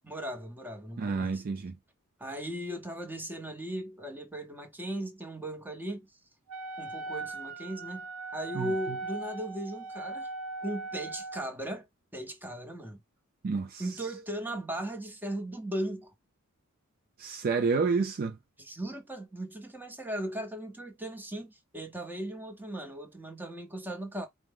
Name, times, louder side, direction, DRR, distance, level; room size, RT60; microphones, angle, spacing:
voice 1, 0.0-1.4 2.2-6.1 6.8-8.1 8.3-10.3 10.6-11.9 12.1-13.0 13.8-16.1 18.6-24.3, right 1 dB, 10° right, 0.8 m, -37 dB
voice 2, 1.0-1.7 8.5-8.7 13.4-13.8 17.2-18.4, right 4 dB, 45° right, 0.4 m, -29 dB
Wind instrument woodwind instrument, 6.5-11.5, right 3 dB, 90° right, 0.8 m, -39 dB
4.5 x 2.1 x 3.5 m
head